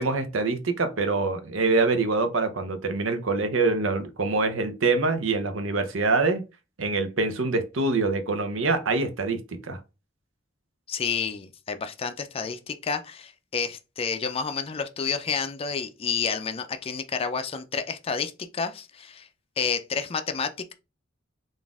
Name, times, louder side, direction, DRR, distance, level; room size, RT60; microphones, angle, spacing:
voice 1, 0.0-6.4 6.8-9.4 9.7-9.8, right 3 dB, 75° right, 0.7 m, -25 dB
voice 2, 10.9-19.3 19.6-20.7, left 5 dB, 30° left, 0.4 m, -30 dB
4.0 x 2.5 x 3.5 m
head